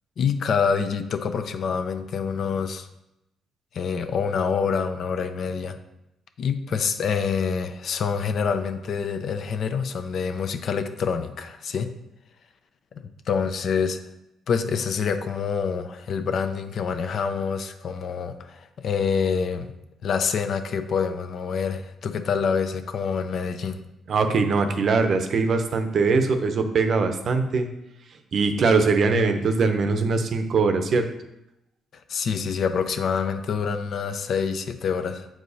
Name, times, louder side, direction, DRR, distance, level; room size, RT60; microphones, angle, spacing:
voice 1, 0.2-2.9 3.7-5.8 6.4-11.9 13.0-14.0 14.5-19.7 20.0-23.8 32.1-35.3, left 6 dB, 60° left, 8 dB, 0.5 m, -26 dB
voice 2, 24.1-27.7 28.3-31.1, right 4 dB, 55° right, 7 dB, 0.7 m, -21 dB
7.5 x 4.7 x 2.7 m, 0.87 s
cardioid pair, 90°, 0 cm